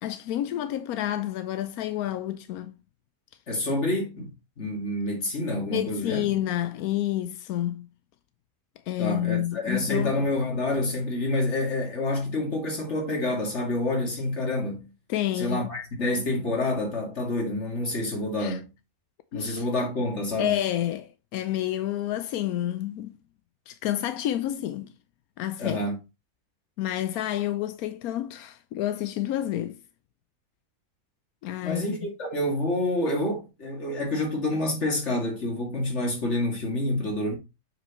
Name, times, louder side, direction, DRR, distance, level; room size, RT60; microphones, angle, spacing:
voice 1, 0.0-2.8 5.7-7.9 8.9-10.1 15.1-15.7 18.4-18.6 19.3-19.7 20.4-23.1 23.7-24.9 25.4-25.8 26.8-29.8 31.4-31.8, left 12 dB, 90° left, 1.1 m, -29 dB
voice 2, 3.5-6.2 9.0-14.8 15.3-18.7 19.3-20.5 25.6-26.0 31.6-37.3, left 1 dB, 50° left, 2.8 m, -28 dB
7.4 x 6.0 x 3.0 m
omnidirectional pair, 1.5 m